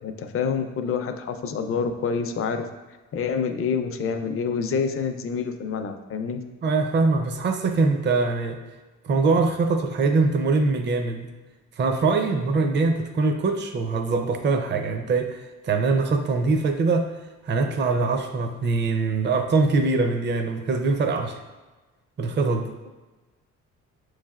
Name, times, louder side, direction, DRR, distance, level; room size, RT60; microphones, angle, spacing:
voice 1, 0.0-2.7 3.1-6.4, left 6 dB, 45° left, 7 dB, 0.5 m, -27 dB
voice 2, 6.6-8.6 9.0-11.3 11.8-15.4 15.6-17.1 17.5-21.4 22.2-22.7, right 3 dB, 35° right, 6 dB, 0.5 m, -23 dB
6.8 x 3.2 x 2.4 m, 1.2 s
cardioid pair, 90°, 30 cm